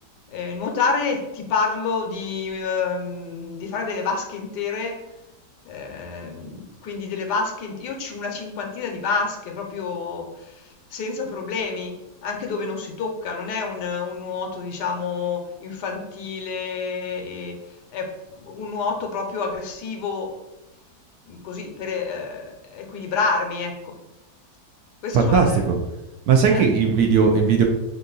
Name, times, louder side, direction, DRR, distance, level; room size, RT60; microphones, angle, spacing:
voice 1, 0.3-5.0 5.6-11.9 12.2-17.6 17.9-18.1 18.4-20.4 21.3-23.9 25.0-25.6 26.5-26.6, left 4 dB, 75° left, 3 dB, 1.3 m, -28 dB
voice 2, 25.1-25.8 26.3-27.6, right 5 dB, 70° right, 3 dB, 1.0 m, -17 dB
5.3 x 2.5 x 3.9 m, 1.0 s
omnidirectional pair, 1.9 m